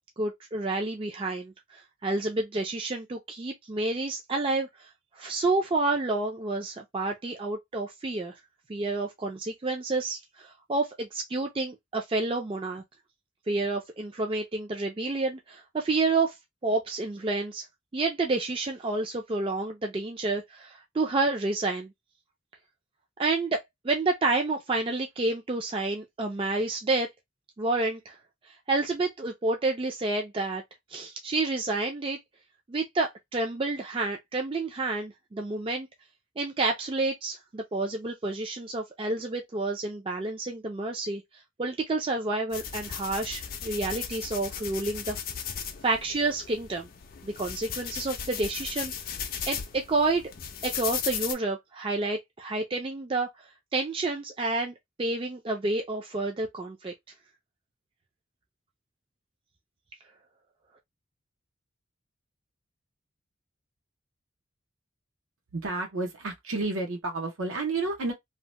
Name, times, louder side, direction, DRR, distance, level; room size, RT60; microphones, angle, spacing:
voice 1, 0.2-4.9 5.2-8.3 8.7-12.8 13.5-16.4 16.6-17.7 17.9-21.9 23.2-27.1 27.6-28.2 28.7-30.6 30.9-32.2 32.7-35.9 36.4-41.2 41.6-45.2 45.8-46.9 47.2-48.9 49.5-50.2 50.6-53.3 53.7-56.9, right 3 dB, 25° right, 0.3 m, -29 dB
sound 1, 42.5-51.3, left 8 dB, 45° left, 0.4 m, -36 dB
voice 2, 65.5-68.1, right 3 dB, 90° right, 0.6 m, -31 dB
2.7 x 2.1 x 2.9 m
head